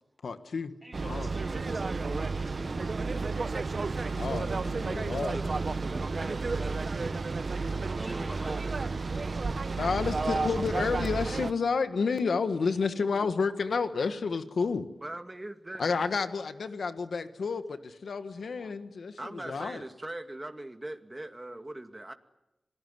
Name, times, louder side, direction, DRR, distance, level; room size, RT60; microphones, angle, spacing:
voice 1, 0.2-0.7 1.0-1.3 4.2-5.4 9.8-14.8 15.8-19.1 19.5-19.8, left 5 dB, 80° left, 9 dB, 1.5 m, -30 dB
voice 2, 0.8-3.3 8.0-8.7 9.1-9.4 10.0-10.8 12.6-13.0, equal, ahead, -3 dB, 7.6 m, -48 dB
sound 1, 0.9-11.5, right 4 dB, 60° right, 1.2 m, -31 dB
voice 3, 4.6-8.9 14.9-16.3 18.3-18.4 19.2-22.1, right 1 dB, 25° right, 6 dB, 2.3 m, -42 dB
27.0 x 19.5 x 9.6 m, 0.93 s
cardioid pair, 45°, 0 cm